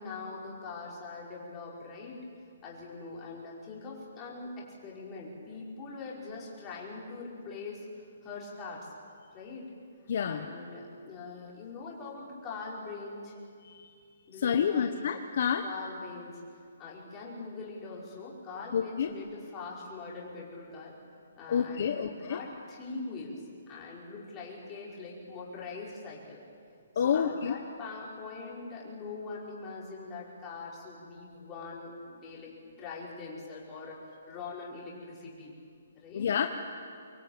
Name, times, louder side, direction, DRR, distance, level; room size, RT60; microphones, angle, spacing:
voice 1, 0.0-2.2 2.6-7.8 8.2-8.9 9.3-9.7 10.2-13.3 14.3-15.0 15.6-16.4 16.8-20.9 21.4-26.4 26.9-34.0 34.3-35.5 36.0-36.3, left 4 dB, 15° left, -4 dB, 5.2 m, -42 dB
voice 2, 10.1-10.4 13.6-13.9 14.4-15.6 18.7-19.1 21.5-22.4 27.0-27.5 36.1-36.5, left 7 dB, 50° left, 6 dB, 1.2 m, -28 dB
25.5 x 21.5 x 8.9 m, 2.3 s
hypercardioid pair, 170°, 0 cm